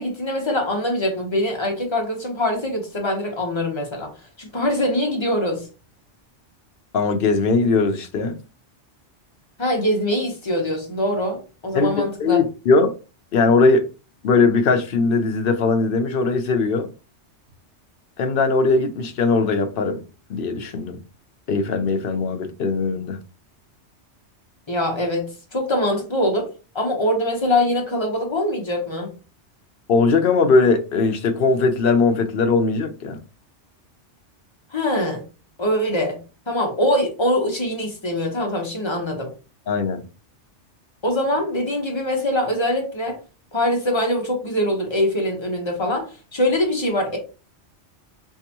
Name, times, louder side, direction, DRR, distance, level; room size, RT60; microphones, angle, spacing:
voice 1, 0.0-4.1 4.4-5.7 9.6-12.4 24.7-26.5 26.7-29.1 34.7-35.2 35.6-36.2 36.5-39.3 41.0-43.2 43.5-47.2, left 1 dB, 25° left, 1.1 m, -23 dB
voice 2, 6.9-8.4 11.7-12.9 13.3-13.8 14.2-16.9 18.2-20.0 20.3-21.0 21.5-23.2 29.9-33.2 39.7-40.0, left 4 dB, 55° left, 0.8 m, -19 dB
3.5 x 3.3 x 2.9 m
omnidirectional pair, 1.2 m